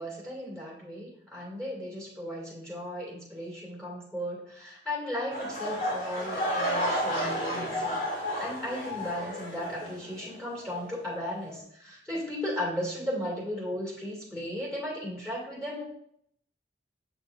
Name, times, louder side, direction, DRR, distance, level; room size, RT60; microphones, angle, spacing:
voice 1, 0.0-8.0 8.4-15.8, left 1 dB, 5° left, -4 dB, 2.4 m, -36 dB
sound 1, 5.3-10.3 10.6-10.9 11.5-11.6, equal, 50° left, 2.2 m, -32 dB
7.9 x 6.2 x 2.6 m, 0.68 s
head